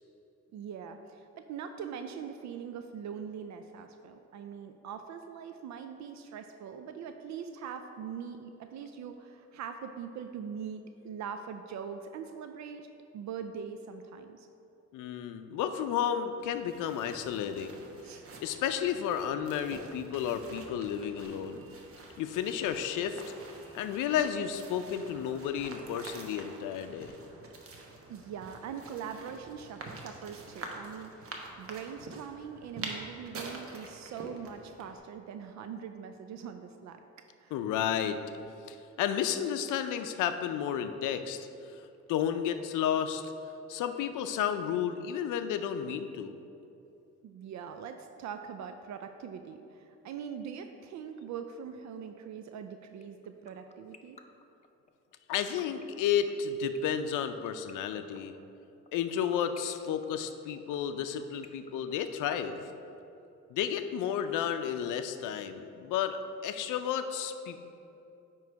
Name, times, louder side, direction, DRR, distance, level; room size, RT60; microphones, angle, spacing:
voice 1, 0.5-12.9 13.1-14.5 18.0-18.3 28.1-37.0 37.4-37.5 47.2-54.2, right 7 dB, 65° right, 7 dB, 0.5 m, -42 dB
voice 2, 14.9-17.8 18.4-21.6 22.2-23.2 23.7-27.1 37.5-38.2 38.7-43.3 43.7-46.4 55.3-58.3 58.9-62.6 63.5-66.2 66.4-67.6, left 8 dB, 85° left, 9 dB, 0.5 m, -32 dB
sound 1, 16.4-35.0, right 3 dB, 50° right, 1.0 m, -47 dB
sound 2, 53.0-62.6, left 5 dB, 25° left, 0.4 m, -51 dB
9.3 x 3.1 x 4.6 m, 2.8 s
cardioid pair, 90°, 30 cm